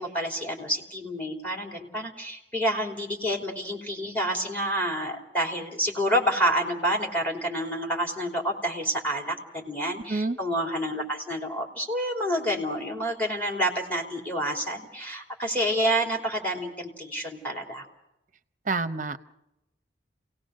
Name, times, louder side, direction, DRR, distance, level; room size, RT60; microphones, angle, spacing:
voice 1, 0.0-17.8, equal, 10° left, 1 dB, 3.2 m, -28 dB
voice 2, 18.7-19.2, right 3 dB, 40° right, 11 dB, 0.8 m, -27 dB
28.0 x 18.0 x 6.5 m, 0.89 s
head